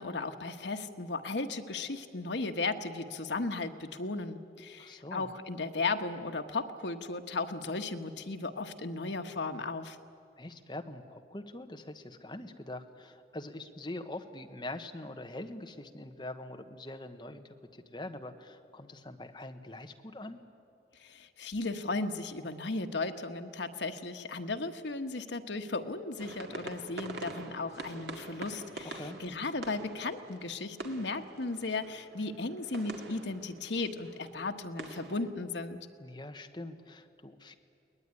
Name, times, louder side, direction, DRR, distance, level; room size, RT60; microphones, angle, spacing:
voice 1, 0.0-10.0 21.0-35.8, left 3 dB, 85° left, 6 dB, 1.3 m, -36 dB
voice 2, 4.8-5.3 10.4-20.4 28.9-29.2 36.0-37.6, left 1 dB, 25° left, 6 dB, 1.2 m, -43 dB
sound 1, 26.2-35.3, right 2 dB, 75° right, 2.1 m, -45 dB
22.5 x 19.5 x 9.8 m, 2.5 s
head